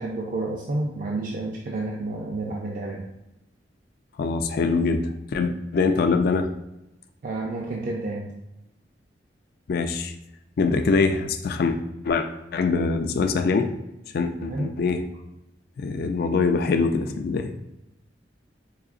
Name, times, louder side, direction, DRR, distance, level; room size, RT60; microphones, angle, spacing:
voice 1, 0.0-3.1 7.2-8.3 14.4-14.7, right 2 dB, 50° right, -1 dB, 0.4 m, -30 dB
voice 2, 4.2-6.5 9.7-10.1 10.6-11.8 12.0-13.7 14.1-15.0 15.8-17.5, left 4 dB, 60° left, 6 dB, 0.4 m, -23 dB
4.8 x 2.7 x 2.4 m, 0.90 s
head